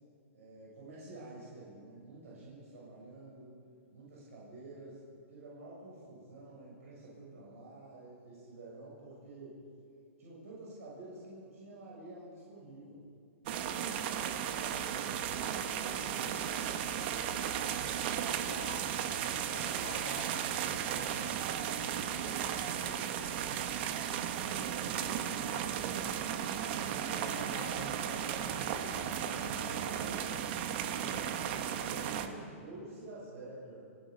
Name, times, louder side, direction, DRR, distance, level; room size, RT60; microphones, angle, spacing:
voice 1, 0.3-3.6 3.9-5.0 5.3-9.6 10.2-13.0 14.2-17.5 19.2-19.9 20.3-23.9 24.3-26.3 26.8-27.2 30.8-31.5 31.8-33.8, right 2 dB, 80° right, -6 dB, 7.1 m, -50 dB
sound 1, 13.5-32.3, right 9 dB, 45° right, 1.4 m, -35 dB
voice 2, 13.6-14.3 18.1-19.1 19.4-20.5 27.0-30.4, left 3 dB, 90° left, 3 dB, 5.0 m, -49 dB
30.0 x 16.0 x 5.4 m, 2.3 s
hypercardioid pair, 145°, 8 cm